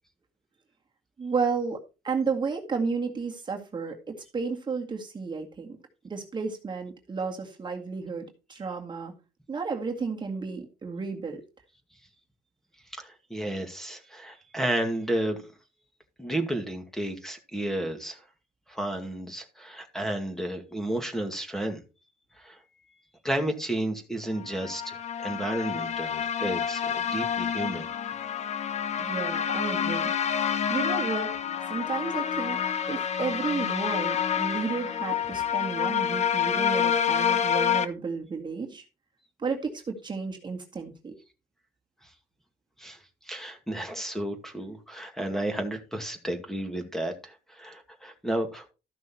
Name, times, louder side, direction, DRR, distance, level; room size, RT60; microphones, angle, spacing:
voice 1, 1.2-5.8 6.0-9.1 9.5-11.4 29.0-30.1 30.7-32.6 32.9-38.8 39.4-41.1, right 5 dB, 25° right, 2.0 m, -32 dB
voice 2, 12.9-15.5 16.2-18.2 18.7-21.8 22.4-22.6 23.2-27.9 42.8-43.0 43.2-48.7, right 1 dB, ahead, 2.2 m, -32 dB
sound 1, 24.5-37.9, left 8 dB, 40° left, 1.1 m, -28 dB
13.5 x 6.2 x 4.4 m
cardioid pair, 110°, 17 cm